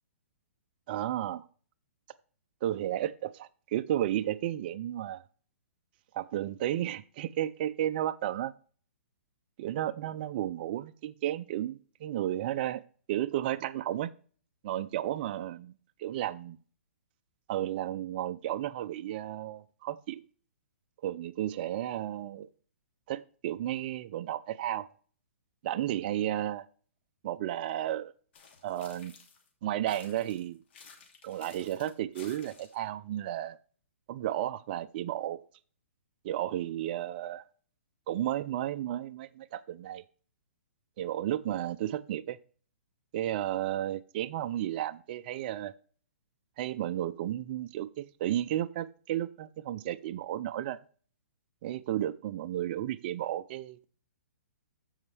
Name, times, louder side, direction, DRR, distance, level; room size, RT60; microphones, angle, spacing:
voice 1, 0.9-1.5 2.6-5.2 6.1-8.5 9.6-12.8 13.1-14.1 14.6-15.7 16.0-16.6 17.5-20.2 21.0-22.5 23.1-24.9 25.6-26.7 27.2-28.1 28.6-29.2 29.6-30.6 31.2-33.6 34.1-35.4 36.2-37.4 38.1-40.0 41.0-42.4 43.1-45.7 46.6-50.8 51.6-53.9, right 12 dB, 40° right, 10 dB, 0.4 m, -33 dB
sound 1, 28.3-29.5 29.9-32.9, left 6 dB, 50° left, 2.6 m, -54 dB
14.5 x 5.4 x 3.4 m, 0.42 s
hypercardioid pair, 150°, 8 cm